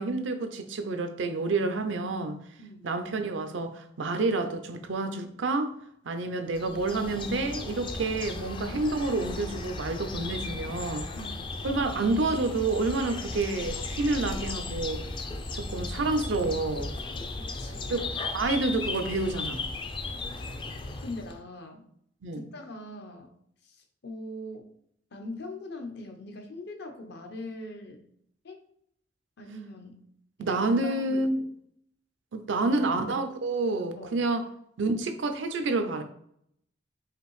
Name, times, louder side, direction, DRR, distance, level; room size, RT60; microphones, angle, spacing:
voice 1, 0.0-2.4 2.8-5.7 6.0-11.1 11.6-15.0 15.5-16.9 17.9-18.0 18.3-19.6 22.2-22.4 30.4-31.3 32.3-34.4 34.8-36.0, right 3 dB, 85° right, 7 dB, 0.5 m, -28 dB
voice 2, 2.6-2.9 11.1-11.5 17.4-18.1 21.0-21.9 22.3-23.3 23.6-24.7 25.1-28.0 28.4-28.6 29.4-30.0 30.4-31.3 32.6-33.1 34.0-34.3, left 1 dB, 65° left, 4 dB, 0.7 m, -42 dB
sound 1, 6.5-21.4, left 3 dB, 25° left, 0.4 m, -36 dB
5.0 x 2.6 x 3.1 m, 0.69 s
head